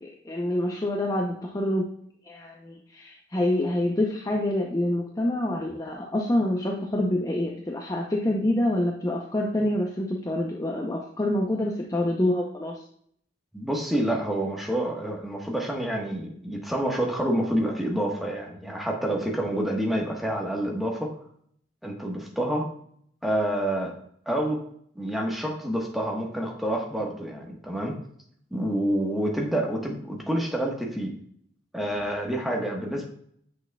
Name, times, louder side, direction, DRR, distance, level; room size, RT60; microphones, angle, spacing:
voice 1, 0.0-1.9 2.2-12.8, left 1 dB, 20° left, -1 dB, 0.6 m, -26 dB
voice 2, 13.5-21.1 21.8-22.7 23.2-24.0 24.3-24.6 24.9-27.9 28.5-31.1 31.7-33.0, right 1 dB, ahead, -1 dB, 1.2 m, -28 dB
8.1 x 6.3 x 2.3 m, 0.65 s
head